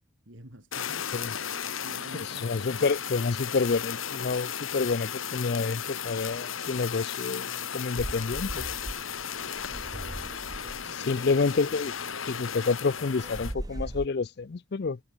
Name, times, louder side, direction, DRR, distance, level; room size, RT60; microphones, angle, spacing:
voice 1, 0.3-1.1 1.8-2.9 9.4-11.7, right 1 dB, 75° right, 7.2 m, -50 dB
Fire, 0.7-13.5, left 8 dB, 90° left, 1.6 m, -35 dB
voice 2, 2.4-8.6 11.0-11.9 12.3-15.0, left 4 dB, 55° left, 0.5 m, -28 dB
sound 1, 8.0-14.1, right 1 dB, 20° right, 0.6 m, -40 dB
head